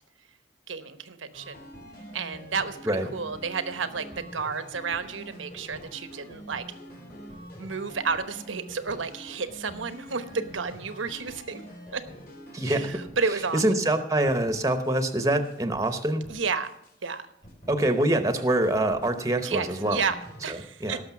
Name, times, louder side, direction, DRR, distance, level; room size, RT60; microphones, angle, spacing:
voice 1, 0.7-1.7 2.1-6.6 7.6-11.6 11.9-12.0 12.6-13.6 16.3-16.7 17.0-17.2 19.4-20.1 20.4-21.0, right 5 dB, 90° right, 11 dB, 1.0 m, -31 dB
sound 1, 1.3-14.0 14.2-15.0 15.2-17.1 17.4-18.1 18.4-20.5, equal, 50° left, 4.1 m, -46 dB
voice 2, 12.5-12.9 13.5-16.3 17.7-20.0 20.8-21.0, right 1 dB, 15° right, 9 dB, 0.9 m, -25 dB
18.0 x 6.6 x 5.9 m, 0.78 s
head